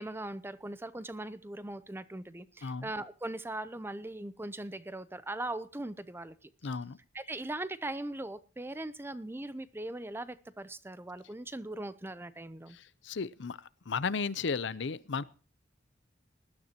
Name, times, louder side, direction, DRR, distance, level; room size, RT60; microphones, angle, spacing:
voice 1, 0.0-6.4 7.1-12.8, right 1 dB, 10° right, 14 dB, 0.6 m, -40 dB
voice 2, 6.6-7.0 12.7-13.6 13.9-15.2, left 5 dB, 75° left, 17 dB, 0.6 m, -34 dB
20.0 x 12.5 x 2.9 m, 0.37 s
head